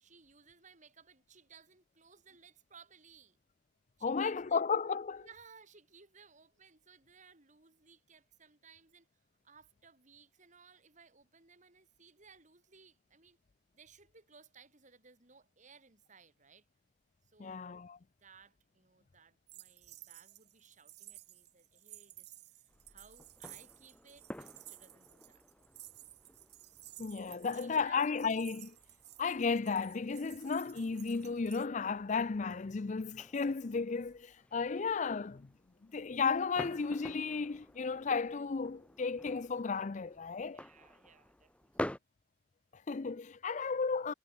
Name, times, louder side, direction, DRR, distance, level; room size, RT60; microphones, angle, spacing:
voice 1, 0.0-3.4 4.0-4.6 5.2-9.1 9.4-13.4 13.7-16.7 17.2-17.6 18.2-22.3 22.9-25.4 27.3-28.0 40.4-42.0, right 5 dB, 40° right, 2.9 m, -61 dB
voice 2, 4.0-5.3 17.4-18.0 27.0-28.7 29.2-35.5 35.9-40.6 42.7-44.1, left 5 dB, 40° left, 0.5 m, -34 dB
sound 1, 19.5-31.7, right 16 dB, 55° right, 4.3 m, -55 dB
sound 2, 22.7-42.0, left 1 dB, 5° left, 1.2 m, -50 dB
head